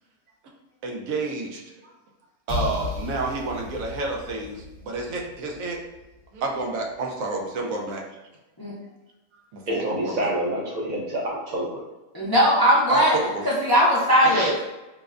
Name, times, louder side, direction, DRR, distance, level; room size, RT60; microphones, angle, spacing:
voice 1, 0.8-1.6 2.5-5.8 6.3-8.0 9.5-10.3 12.9-13.4, right 3 dB, 80° right, 0 dB, 1.0 m, -29 dB
sound 1, 2.5-6.2, left 3 dB, 60° left, 1.0 m, -35 dB
voice 2, 9.7-11.8 14.2-14.5, right 1 dB, 45° right, -3 dB, 0.6 m, -27 dB
voice 3, 12.1-13.2 13.4-14.5, equal, 30° left, -8 dB, 0.4 m, -19 dB
4.7 x 2.1 x 2.4 m, 1.0 s
omnidirectional pair, 1.4 m